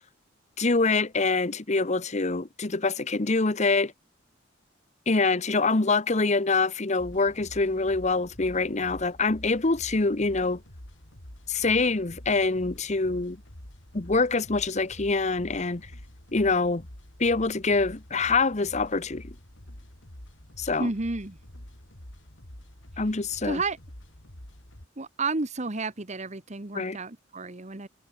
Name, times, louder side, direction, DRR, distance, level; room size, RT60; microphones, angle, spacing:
voice 1, 0.6-3.9 5.1-10.6 11.5-13.4 13.9-15.9 16.3-16.9 17.2-19.3 20.6-20.9 23.0-23.6 26.7-27.0, left 3 dB, 35° left, 1.0 m, -25 dB
sound 1, 7.0-24.9, left 1 dB, 75° left, 4.2 m, -47 dB
voice 2, 20.8-21.4 23.4-23.8 25.0-27.9, right 3 dB, 35° right, 1.3 m, -31 dB
head